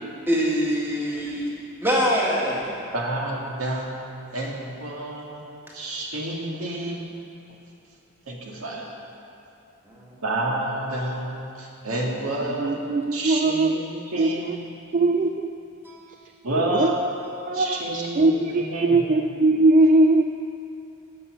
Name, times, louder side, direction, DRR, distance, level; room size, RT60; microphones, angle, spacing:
voice 1, 0.3-2.7 9.9-10.1 15.8-16.1, equal, 10° right, -4 dB, 1.7 m, -24 dB
voice 2, 2.9-4.0 4.3-7.2 8.3-8.9 10.2-14.8 16.4-17.0 17.4-19.2, right 1 dB, 70° right, -1 dB, 1.8 m, -30 dB
voice 3, 12.6-13.7 14.2-14.3 14.9-15.6 16.5-16.9 17.5-20.2, right 2 dB, 35° right, 6 dB, 0.3 m, -20 dB
15.5 x 5.6 x 6.5 m, 2.7 s
head